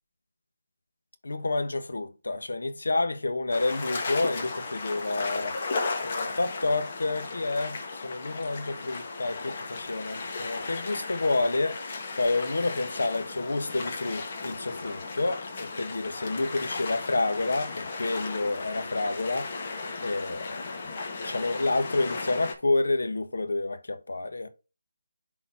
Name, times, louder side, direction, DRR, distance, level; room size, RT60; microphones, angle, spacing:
voice 1, 1.2-5.5 6.0-11.8 12.2-19.6 20.0-20.6 21.2-24.5, left 2 dB, 85° left, 1.1 m, -29 dB
sound 1, 3.5-22.5, left 3 dB, 35° left, 1.5 m, -35 dB
10.5 x 4.0 x 2.8 m
figure-of-eight pair, 170°, 0 cm